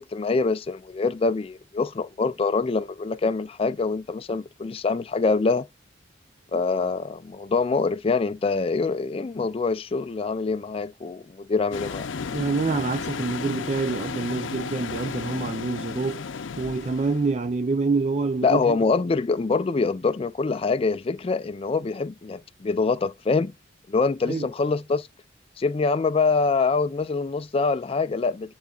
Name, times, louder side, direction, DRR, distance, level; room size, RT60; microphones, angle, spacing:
voice 1, 0.0-5.7 6.5-12.1 18.4-23.5 23.9-25.1 25.6-28.5, left 4 dB, 30° left, 0.3 m, -25 dB
sound 1, 11.7-17.4, left 5 dB, 75° left, 0.6 m, -34 dB
voice 2, 12.3-16.3 16.6-18.8 24.3-24.5, right 3 dB, 35° right, 0.4 m, -26 dB
10.5 x 3.9 x 2.3 m
head